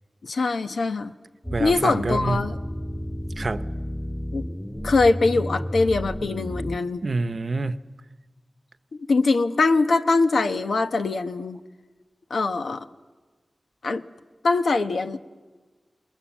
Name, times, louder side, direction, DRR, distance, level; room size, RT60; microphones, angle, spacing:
voice 1, 0.2-1.1 1.6-2.6 4.3-4.4 4.8-7.0 8.9-11.6 12.3-12.9 13.8-14.0 14.4-15.2, left 3 dB, 90° left, 8 dB, 1.0 m, -22 dB
sound 1, 1.4-6.8, equal, 10° left, 2.0 m, -32 dB
voice 2, 1.5-2.5 3.4-3.7 7.0-7.8, right 3 dB, 60° right, 12 dB, 0.8 m, -26 dB
28.0 x 21.0 x 7.3 m, 1.3 s
wide cardioid pair, 60°, 0 cm